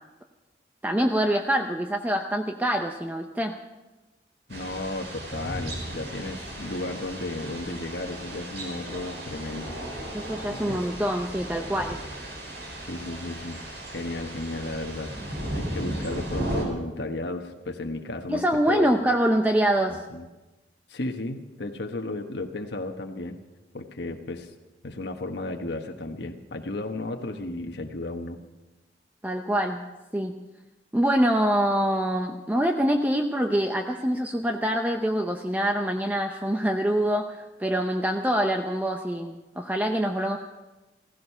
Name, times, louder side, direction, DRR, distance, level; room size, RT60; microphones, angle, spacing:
voice 1, 0.8-3.6 10.1-12.0 18.3-20.0 29.2-30.4 30.9-40.4, right 1 dB, 10° right, 4 dB, 0.6 m, -25 dB
voice 2, 4.5-10.2 10.5-10.9 12.9-13.6 13.9-18.9 19.9-20.2 20.9-23.4 23.7-24.5 24.8-28.4, left 2 dB, 70° left, 4 dB, 1.2 m, -34 dB
sound 1, 4.5-16.6, right 1 dB, 85° right, 5.2 m, -35 dB
16.0 x 16.0 x 5.6 m, 1.1 s
head